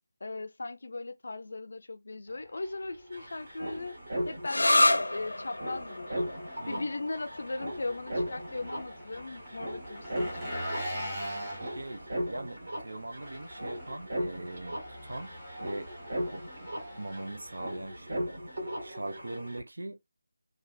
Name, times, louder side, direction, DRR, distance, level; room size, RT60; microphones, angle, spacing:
voice 1, 0.2-3.9 4.3-6.2 6.7-10.7, left 2 dB, 50° left, 0.5 m, -38 dB
Engine, 2.3-18.1, equal, 10° right, 0.7 m, -44 dB
sound 1, 2.6-2.7 2.8-19.6, equal, 50° right, 1.6 m, -38 dB
sound 2, 4.4-11.8, left 2 dB, 85° left, 0.7 m, -31 dB
voice 2, 11.6-15.9 16.3-16.4 17.0-18.3 18.8-20.0, right 2 dB, 75° right, 0.8 m, -41 dB
3.3 x 2.4 x 2.3 m
figure-of-eight pair, 175°, 0 cm